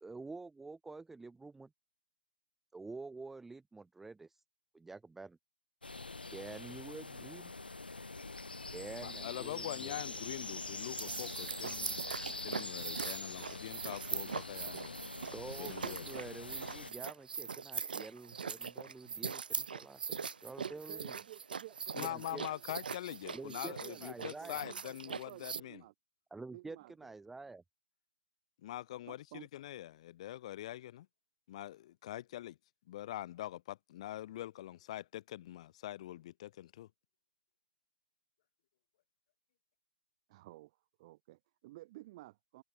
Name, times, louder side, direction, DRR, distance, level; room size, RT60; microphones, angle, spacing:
voice 1, 0.0-1.7 2.7-4.4 4.7-5.4 6.3-7.5 8.7-10.0 15.3-21.2 22.0-22.4 23.3-23.7 24.0-24.6 26.3-27.6, right 3 dB, 5° right, 0.6 m, -48 dB
sound 1, 5.8-16.9, left 3 dB, 90° left, 0.6 m, -44 dB
voice 2, 9.0-12.0 12.4-15.0 15.6-16.1 21.9-25.8 28.6-31.1 31.5-32.6 32.9-36.9, left 13 dB, 40° left, 0.7 m, -44 dB
sound 2, 10.9-25.6, right 6 dB, 75° right, 0.3 m, -41 dB
voice 3, 20.6-22.6 23.1-25.9 26.5-27.1 29.1-29.5 40.3-42.6, right 18 dB, 35° right, 1.2 m, -53 dB
open air
figure-of-eight pair, 130°, 5 cm